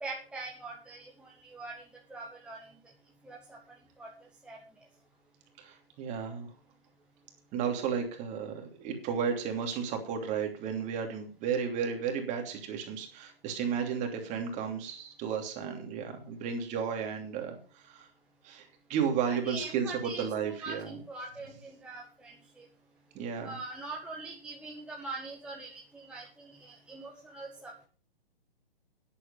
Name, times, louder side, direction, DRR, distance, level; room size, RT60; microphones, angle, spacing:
voice 1, 0.0-1.8 2.1-2.6 3.2-3.6 4.0-4.1 4.4-4.6 19.3-22.6 23.4-27.9, right 3 dB, 5° right, -3 dB, 1.7 m, -43 dB
voice 2, 5.6-6.5 7.5-17.6 17.8-18.1 18.4-20.9 23.1-23.6, right 7 dB, 25° right, 4 dB, 3.0 m, -33 dB
11.0 x 10.5 x 5.6 m, 0.41 s
figure-of-eight pair, 130°, 30 cm